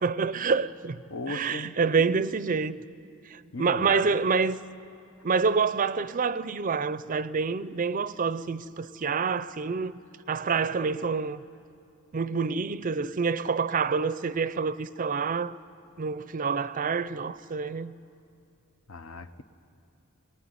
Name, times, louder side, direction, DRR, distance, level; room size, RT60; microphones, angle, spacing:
voice 1, 0.0-1.0 1.3-2.8 3.3-4.6 5.2-9.9 10.3-11.4 12.1-15.6 16.0-17.9, right 5 dB, 40° right, 0.5 m, -27 dB
voice 2, 1.1-2.2 3.5-4.3 18.9-19.4, left 2 dB, 70° left, 1.0 m, -38 dB
23.0 x 20.5 x 9.8 m
head